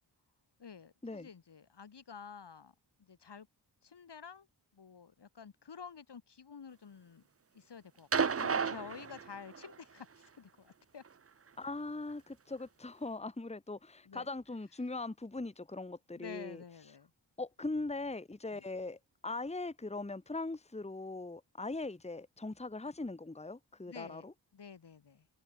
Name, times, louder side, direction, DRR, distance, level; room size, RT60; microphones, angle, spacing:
voice 1, 0.6-3.5 3.8-4.5 4.7-7.2 7.5-11.0 14.1-14.3 16.1-17.1 18.5-18.6 23.9-25.3, left 6 dB, 60° left, 1.8 m, -50 dB
sound 1, 8.1-9.7 11.1-11.2, right 6 dB, 30° right, 0.7 m, -32 dB
voice 2, 11.6-16.6 17.4-24.3, left 2 dB, 15° left, 1.3 m, -40 dB
cardioid pair, 45°, 45 cm